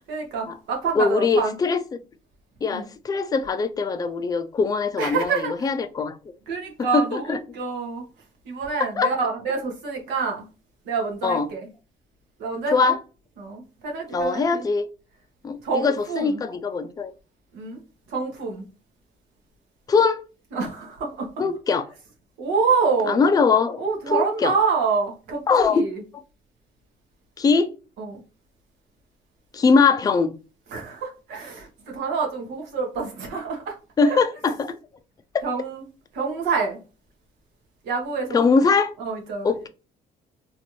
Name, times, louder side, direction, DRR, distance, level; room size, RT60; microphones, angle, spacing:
voice 1, 0.1-1.6 2.7-2.8 5.0-5.5 6.5-8.0 8.5-10.4 10.9-11.6 12.4-13.0 13.4-14.6 15.6-16.4 17.5-17.8 18.1-18.6 20.5-21.3 22.4-23.2 23.8-26.0 28.0-28.2 30.7-33.8 34.0-34.2 35.4-35.8 36.1-36.8 37.8-38.5 39.0-39.7, right 5 dB, 80° right, 1.2 m, -27 dB
voice 2, 1.0-2.0 2.6-6.2 6.9-7.4 8.8-9.1 11.2-11.5 12.7-13.0 14.1-14.9 15.4-17.1 19.9-20.2 21.4-21.9 23.1-24.5 25.5-25.8 27.4-27.7 29.5-30.3 34.0-34.7 38.3-38.9 39.4-39.7, left 4 dB, 20° left, 0.4 m, -21 dB
3.1 x 2.6 x 3.0 m
cardioid pair, 110°, 17 cm